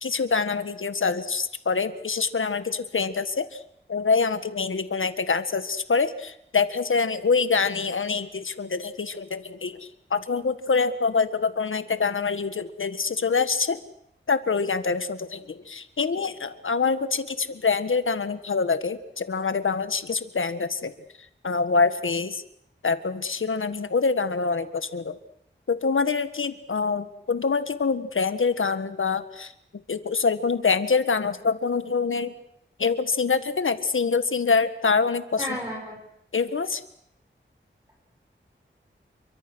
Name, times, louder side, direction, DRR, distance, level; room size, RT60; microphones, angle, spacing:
voice 1, 0.0-3.6 3.9-13.8 14.3-20.9 21.4-22.4 22.8-25.2 25.7-29.5 29.9-32.3 32.8-35.5 36.3-36.8, left 4 dB, 85° left, 11 dB, 1.6 m, -25 dB
voice 2, 35.4-36.0, equal, 15° right, -1 dB, 6.3 m, -32 dB
28.5 x 24.0 x 6.3 m, 0.74 s
wide cardioid pair, 80°, 20 cm